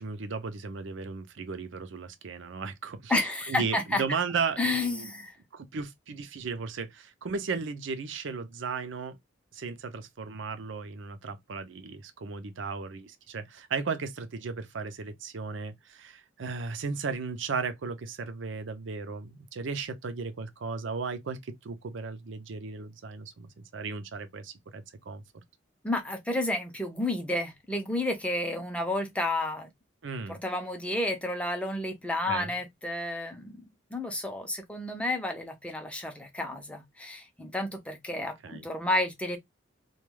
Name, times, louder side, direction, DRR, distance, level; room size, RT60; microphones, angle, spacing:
voice 1, 0.0-3.1 3.5-5.1 5.5-9.2 9.5-25.2 30.0-30.4 32.3-32.5 38.4-38.7, right 5 dB, 65° right, 0.5 m, -35 dB
voice 2, 3.1-4.0 4.6-5.4 25.8-29.7 30.3-33.7 33.9-39.4, left 1 dB, 5° left, 0.5 m, -31 dB
2.2 x 2.2 x 3.0 m
head